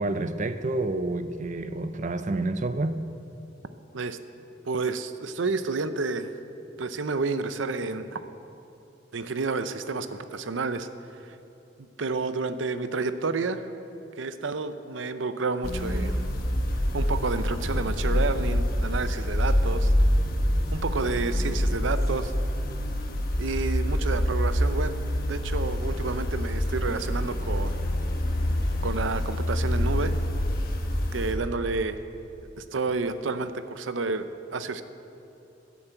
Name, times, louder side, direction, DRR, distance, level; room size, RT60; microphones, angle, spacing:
voice 1, 0.0-3.0, right 2 dB, 40° right, 0.5 m, -29 dB
voice 2, 4.7-6.3 6.8-8.2 9.1-10.9 11.2-11.4 12.0-13.7 14.2-16.2 16.9-19.9 20.7-22.3 23.4-24.9 25.3-27.8 28.8-30.2 31.1-32.0 32.6-34.8, right 3 dB, 85° right, 0.6 m, -30 dB
sound 1, 15.6-31.3, equal, 50° left, 1.2 m, -26 dB
13.5 x 7.3 x 8.0 m
head